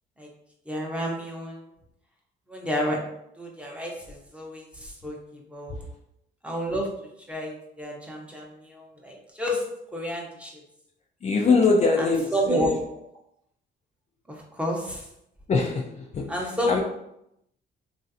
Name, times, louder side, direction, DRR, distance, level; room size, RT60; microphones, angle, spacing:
voice 1, 0.7-1.6 2.5-3.0 3.4-5.8 6.4-6.9 7.3-9.7 9.9-10.5 12.0-12.7 14.3-15.0 16.3-16.8, equal, 5° right, -2 dB, 0.7 m, -30 dB
voice 2, 11.2-12.7 15.5-16.8, left 4 dB, 35° left, 0 dB, 0.4 m, -23 dB
3.0 x 2.5 x 2.7 m, 0.80 s
cardioid pair, 90°, 20 cm